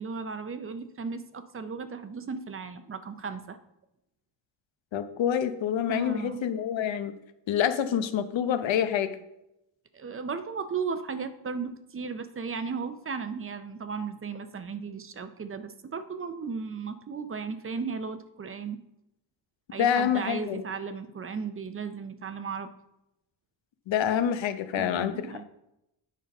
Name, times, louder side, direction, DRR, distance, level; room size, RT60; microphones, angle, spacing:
voice 1, 0.0-3.6 5.9-6.4 9.9-18.8 19.7-22.7 24.8-25.4, right 5 dB, 30° right, 10 dB, 0.6 m, -35 dB
voice 2, 4.9-7.2 7.5-9.2 19.8-20.6 23.9-25.3, left 9 dB, 80° left, 10 dB, 0.8 m, -27 dB
9.3 x 5.6 x 5.3 m, 0.87 s
wide cardioid pair, 160°, 45 cm